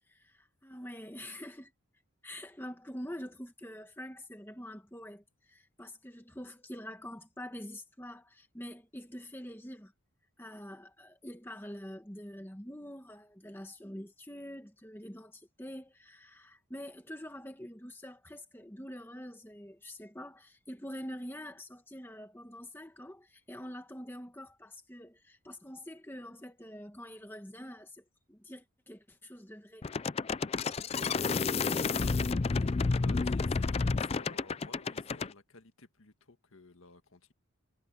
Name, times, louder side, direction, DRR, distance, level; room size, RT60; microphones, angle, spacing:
voice 1, 0.1-1.7 2.2-9.9 10.4-29.9, equal, 10° left, 1.6 m, -45 dB
sound 1, 29.8-35.3, left 4 dB, 30° left, 0.4 m, -30 dB
voice 2, 31.1-37.3, left 3 dB, 70° left, 1.8 m, -54 dB
head